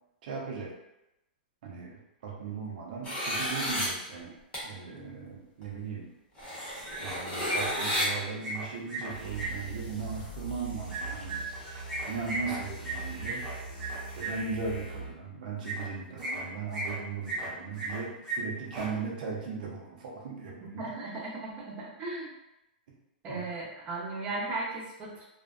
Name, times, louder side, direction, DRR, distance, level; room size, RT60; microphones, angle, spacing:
voice 1, 0.2-0.8 1.6-4.3 4.6-6.1 7.0-11.4 12.1-13.5 14.1-20.9 22.9-23.0 23.3-23.4, right 5 dB, 60° right, -2 dB, 0.6 m, -38 dB
sound 1, 3.0-3.9 4.5-4.6 5.6-5.7 6.4-8.1, equal, 20° left, 0.9 m, -32 dB
sound 2, 6.5-7.2 7.4-9.5 10.9-14.3 15.6-15.8 16.2-16.9 17.2-18.0 18.2-18.4 18.6-18.9, right 2 dB, 5° right, 0.9 m, -36 dB
sound 3, 9.1-15.2, right 4 dB, 85° left, 1.1 m, -41 dB
voice 2, 20.8-22.3 23.2-25.2, right 2 dB, 25° right, -5 dB, 0.7 m, -36 dB
2.5 x 2.2 x 2.4 m, 0.90 s
hypercardioid pair, 140°, 5 cm